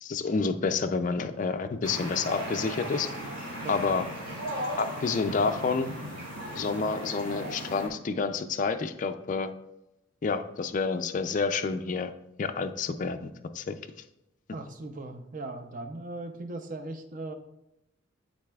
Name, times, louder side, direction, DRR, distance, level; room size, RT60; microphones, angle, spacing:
voice 1, 0.0-3.1 3.7-4.1 4.8-5.9 6.5-9.5 10.2-12.1 12.4-13.8, left 4 dB, 40° left, 8 dB, 0.4 m, -29 dB
sound 1, 1.8-7.9, equal, 75° right, 2.4 m, -37 dB
voice 2, 14.5-17.3, right 2 dB, 40° right, 7 dB, 0.6 m, -38 dB
12.0 x 4.2 x 2.3 m, 0.86 s
head